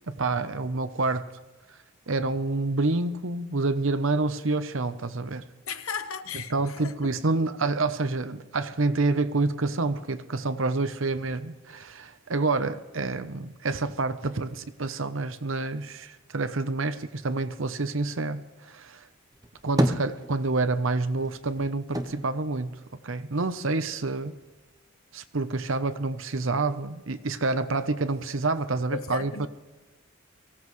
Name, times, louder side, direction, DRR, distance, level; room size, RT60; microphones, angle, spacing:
voice 1, 0.1-1.3 2.1-5.4 6.5-19.0 19.6-22.8 23.0-24.4 25.1-29.5, right 3 dB, 65° right, 0.8 m, -28 dB
voice 2, 5.7-7.1 28.9-29.5, left 6 dB, 75° left, 0.9 m, -35 dB
sound 1, 19.3-20.8 21.1-23.5 23.9-24.8, right 1 dB, 15° right, 0.8 m, -30 dB
23.5 x 16.5 x 3.2 m
head